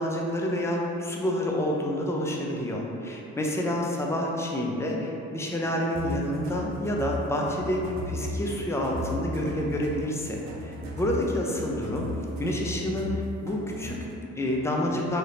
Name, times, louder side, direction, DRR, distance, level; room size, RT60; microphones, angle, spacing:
voice 1, 0.0-12.1 12.4-15.2, left 1 dB, 10° left, -1 dB, 0.4 m, -28 dB
sound 1, 6.0-14.1, equal, 65° right, 0.5 m, -36 dB
3.3 x 2.7 x 2.5 m, 2.7 s
cardioid pair, 90°, 30 cm